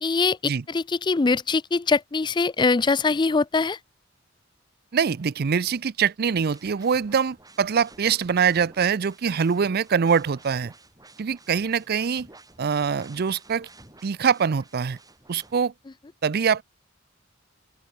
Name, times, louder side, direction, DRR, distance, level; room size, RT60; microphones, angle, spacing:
voice 1, 0.0-3.8, left 4 dB, 25° left, 0.4 m, -23 dB
voice 2, 4.9-10.7 11.2-12.3 12.6-13.7 14.0-15.0 15.3-15.7 16.2-16.6, right 6 dB, 50° right, 0.5 m, -23 dB
sound 1, 6.5-15.6, right 2 dB, 20° right, 7.3 m, -52 dB
open air
head